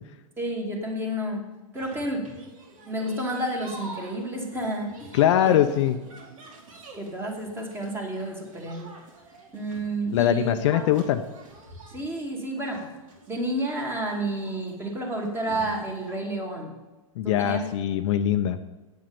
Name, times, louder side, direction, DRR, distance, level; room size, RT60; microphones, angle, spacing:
voice 1, 0.4-1.5 1.7-2.3 2.9-5.1 5.4-5.6 6.9-8.9 9.5-10.9 11.9-12.9 13.3-16.7 17.2-17.6, right 1 dB, 10° right, 1 dB, 2.3 m, -30 dB
sound 1, 1.7-16.3, right 2 dB, 70° right, 3.4 m, -48 dB
voice 2, 5.1-6.0 10.1-11.2 17.2-18.6, left 11 dB, 55° left, 8 dB, 0.7 m, -22 dB
8.4 x 7.7 x 6.9 m, 1.1 s
hypercardioid pair, 120°, 18 cm